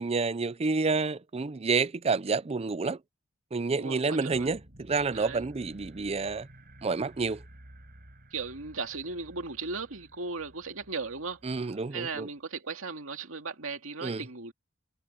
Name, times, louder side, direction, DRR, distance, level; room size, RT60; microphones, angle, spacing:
voice 1, 0.0-3.0 3.5-6.5 6.8-7.4 11.4-12.3 14.0-14.2, right 4 dB, 30° right, 0.5 m, -29 dB
voice 2, 3.8-4.5 5.1-5.4 8.3-11.6 11.9-14.5, right 4 dB, 75° right, 2.4 m, -37 dB
sound 1, 4.3-12.4, right 1 dB, 50° right, 4.8 m, -53 dB
head